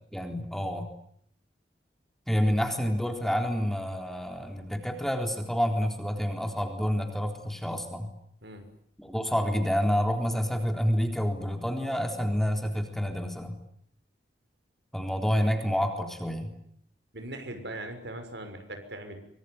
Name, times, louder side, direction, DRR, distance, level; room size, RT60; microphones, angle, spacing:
voice 1, 0.1-0.9 2.3-8.1 9.0-13.6 14.9-16.5, equal, ahead, 4 dB, 3.9 m, -28 dB
voice 2, 17.1-19.2, right 1 dB, 85° right, 7 dB, 6.4 m, -40 dB
24.5 x 24.0 x 9.7 m, 0.68 s
head